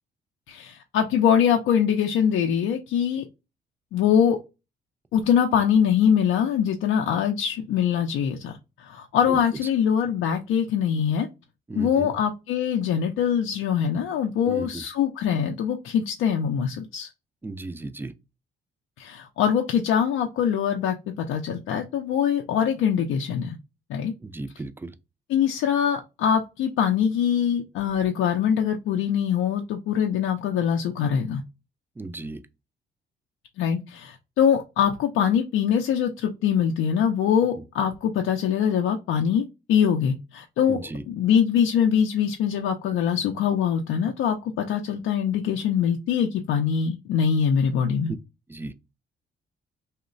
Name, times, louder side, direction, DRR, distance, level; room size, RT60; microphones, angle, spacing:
voice 1, 0.5-3.2 3.9-4.4 5.1-8.5 8.8-11.3 11.7-17.1 19.0-23.6 23.9-24.1 25.3-31.4 33.6-40.8 41.1-48.1, left 8 dB, 80° left, 0.4 m, -23 dB
voice 2, 11.7-12.1 14.5-14.8 17.4-18.1 24.2-24.9 32.0-32.4 40.7-41.0 48.5-48.7, right 2 dB, 10° right, 0.3 m, -35 dB
2.9 x 2.1 x 2.4 m
cardioid pair, 90°, 20 cm